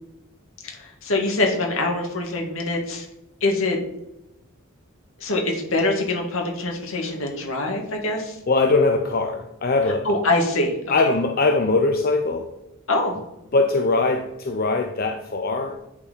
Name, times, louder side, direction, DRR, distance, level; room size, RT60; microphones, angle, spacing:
voice 1, 0.6-3.1 3.4-3.8 5.2-8.4 10.0-10.8 11.0-11.1 12.9-13.2, left 2 dB, 75° left, 1 dB, 2.1 m, -24 dB
voice 2, 8.5-10.1 10.9-12.5 13.5-15.8, left 3 dB, 45° left, 4 dB, 0.6 m, -21 dB
9.7 x 4.5 x 5.2 m, 0.89 s
head